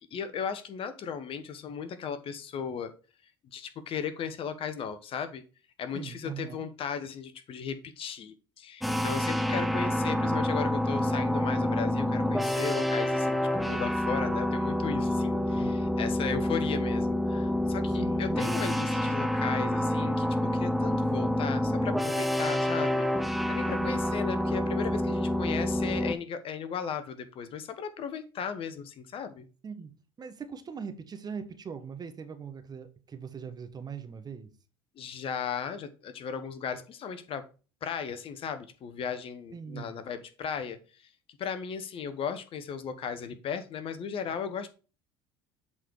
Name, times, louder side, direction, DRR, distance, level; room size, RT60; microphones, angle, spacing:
voice 1, 0.0-2.9 3.5-5.4 5.8-29.5 35.0-37.4 37.8-40.8 41.4-44.7, left 7 dB, 45° left, 1.1 m, -36 dB
voice 2, 5.9-6.7 15.3-15.8 18.0-18.7 23.7-23.9 29.6-34.5 39.5-40.0, right 6 dB, 30° right, 1.2 m, -41 dB
sound 1, 8.8-26.2, left 1 dB, ahead, 0.7 m, -28 dB
7.7 x 4.1 x 4.6 m
hypercardioid pair, 65°, 12 cm